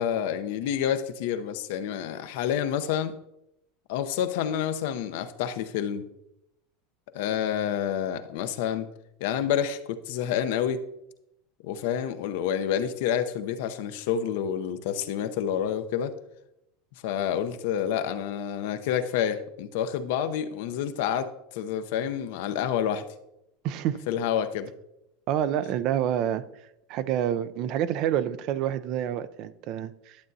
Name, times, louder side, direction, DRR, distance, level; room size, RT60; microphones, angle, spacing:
voice 1, 0.0-3.1 3.9-6.1 7.1-8.9 9.2-10.8 11.6-16.1 17.0-23.0 24.1-24.7, left 9 dB, 70° left, 9 dB, 0.7 m, -28 dB
voice 2, 23.6-24.0 25.3-26.4 26.9-30.2, right 10 dB, 55° right, 14 dB, 0.5 m, -28 dB
11.5 x 7.4 x 2.7 m, 0.84 s
hypercardioid pair, 100°, 0 cm